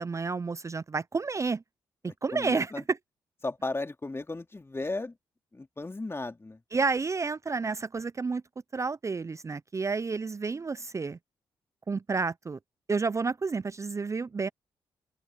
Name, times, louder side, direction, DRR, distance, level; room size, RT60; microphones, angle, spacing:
voice 1, 0.0-1.6 2.0-3.0 6.7-8.4 8.7-11.2 11.9-12.6 12.9-14.5, right 4 dB, 30° right, 0.5 m, -30 dB
voice 2, 2.1-2.8 3.4-5.1 5.5-6.6, left 2 dB, 25° left, 2.7 m, -35 dB
open air
hypercardioid pair, 45°, 10 cm